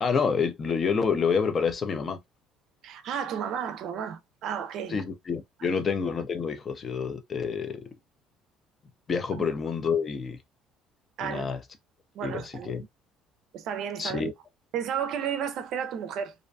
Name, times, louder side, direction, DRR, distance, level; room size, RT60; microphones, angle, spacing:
voice 1, 0.0-2.2 4.9-7.9 9.1-10.4 11.2-11.6 12.2-12.8 14.0-14.3, left 5 dB, 35° left, 0.5 m, -28 dB
voice 2, 2.8-5.0 11.2-11.5 12.1-12.7 13.5-14.3 14.7-16.3, right 8 dB, 65° right, 0.4 m, -32 dB
2.4 x 2.2 x 2.5 m
cardioid pair, 120°, 0 cm